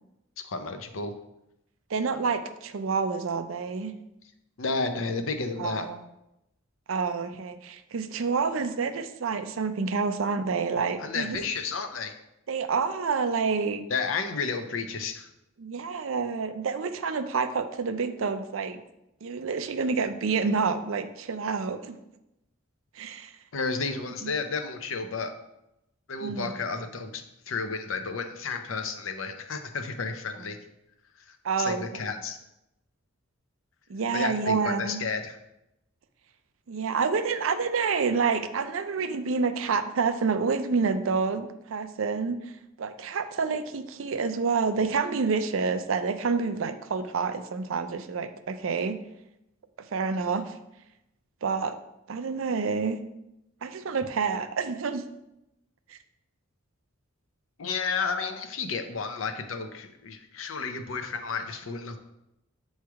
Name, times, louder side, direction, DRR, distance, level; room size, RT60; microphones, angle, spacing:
voice 1, 0.4-1.1 4.6-5.9 11.0-12.1 13.9-15.3 23.5-25.3 26.1-30.6 31.3-32.4 34.1-35.4 57.6-62.0, left 4 dB, 75° left, 7 dB, 0.7 m, -32 dB
voice 2, 1.9-3.9 5.6-6.0 6.9-11.4 12.5-13.8 15.6-18.8 19.2-22.0 23.0-23.3 24.0-24.3 26.2-26.5 31.4-31.8 33.9-35.0 36.7-42.5 42.8-49.0 49.9-50.6 51.4-51.8 52.1-53.0 53.6-55.0 55.9-56.0, right 5 dB, 75° right, 10 dB, 0.5 m, -28 dB
7.3 x 3.2 x 4.7 m, 0.87 s
head